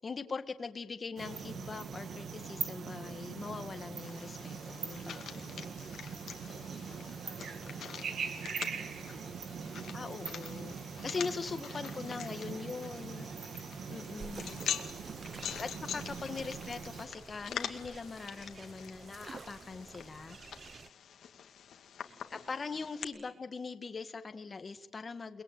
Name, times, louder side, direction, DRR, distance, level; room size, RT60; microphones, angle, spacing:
voice 1, 0.0-5.7 9.9-13.2 13.9-14.6 15.6-20.4 22.3-25.4, left 4 dB, 35° left, 8 dB, 1.9 m, -41 dB
sound 1, 1.2-17.1, right 6 dB, 65° right, 2.7 m, -42 dB
sound 2, 4.0-23.0, left 9 dB, 75° left, 2.4 m, -45 dB
voice 2, 5.0-5.5 6.4-10.0 11.6-13.6 15.2-15.7 16.3-16.7 22.0-22.5 23.1-23.4, right 1 dB, 10° right, 2 dB, 5.4 m, -60 dB
sound 3, 14.2-20.9, right 5 dB, 40° right, 0.9 m, -50 dB
30.0 x 21.0 x 9.1 m, 1.0 s
cardioid pair, 130°, 0 cm